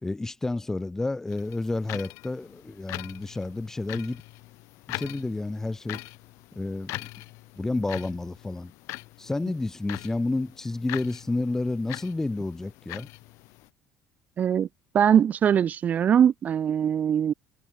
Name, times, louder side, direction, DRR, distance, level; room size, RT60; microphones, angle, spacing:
voice 1, 0.0-4.2 4.9-6.0 6.5-7.1 7.6-8.7 9.2-13.1, left 2 dB, 10° left, 1.4 m, -30 dB
sound 1, 1.3-13.7, left 22 dB, 80° left, 3.8 m, -42 dB
voice 2, 14.4-14.7 14.9-17.3, right 8 dB, 35° right, 0.6 m, -21 dB
cardioid pair, 150°, 5 cm